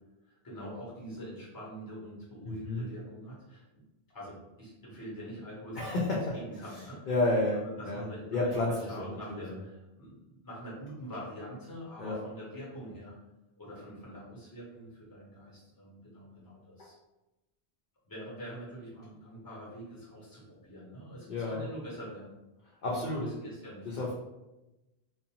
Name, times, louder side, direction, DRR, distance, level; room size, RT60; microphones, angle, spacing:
voice 1, 0.3-3.6 4.1-7.1 7.5-13.1 13.6-17.0 18.0-22.3 22.9-24.1, equal, 20° left, -6 dB, 0.9 m, -45 dB
voice 2, 5.7-6.2 7.1-8.0 8.3-9.6 12.0-12.2 21.3-21.7 22.8-23.4 23.8-24.1, left 2 dB, 55° left, -5 dB, 0.6 m, -31 dB
2.5 x 2.1 x 2.8 m, 0.99 s
omnidirectional pair, 1.1 m